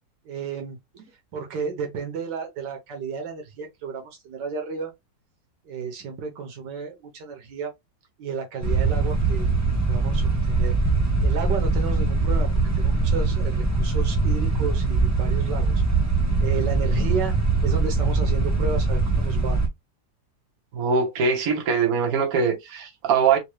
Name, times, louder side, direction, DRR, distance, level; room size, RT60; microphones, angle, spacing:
voice 1, 0.2-0.8 1.3-4.9 5.6-7.7 8.2-9.5 9.9-10.8 11.2-12.5 12.8-15.8 16.4-17.4 17.6-19.6, right 5 dB, 75° right, 1.6 m, -32 dB
sound 1, 8.6-19.7, right 3 dB, 20° right, 0.5 m, -22 dB
voice 2, 20.7-23.4, right 5 dB, 60° right, 1.4 m, -22 dB
4.3 x 2.3 x 3.1 m
omnidirectional pair, 1.9 m